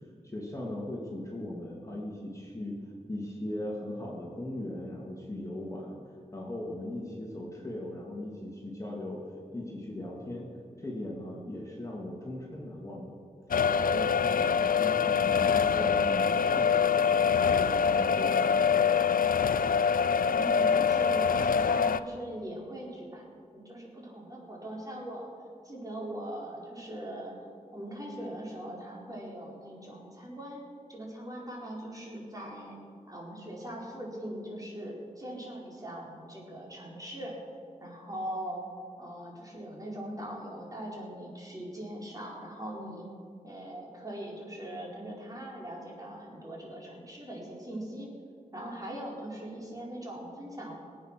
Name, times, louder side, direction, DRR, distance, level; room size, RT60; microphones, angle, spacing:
voice 1, 0.2-6.0 6.3-9.2 9.5-10.5 10.8-13.1 13.8-19.3, left 1 dB, 20° left, -3 dB, 2.8 m, -39 dB
sound 1, 13.5-22.0, left 6 dB, 75° left, 0.4 m, -25 dB
voice 2, 20.1-25.3 25.6-27.3 27.7-30.6 30.9-32.7 33.1-37.4 37.8-38.6 39.0-43.1 43.4-48.1 48.5-50.8, right 1 dB, 25° right, -4 dB, 4.5 m, -41 dB
24.5 x 8.8 x 6.1 m, 2.2 s
wide cardioid pair, 90°, 14 cm